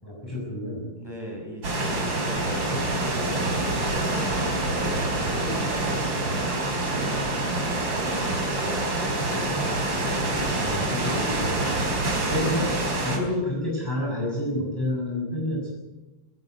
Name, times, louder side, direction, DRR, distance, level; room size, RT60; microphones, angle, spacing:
voice 1, 0.0-0.9 10.3-11.7 12.3-15.7, left 1 dB, 10° left, -3 dB, 6.8 m, -29 dB
voice 2, 1.0-4.2 5.1-10.0, equal, 10° right, -2 dB, 7.8 m, -39 dB
sound 1, 1.6-13.2, right 2 dB, 60° right, 4.8 m, -26 dB
19.5 x 17.0 x 9.5 m, 1.0 s
omnidirectional pair, 2.4 m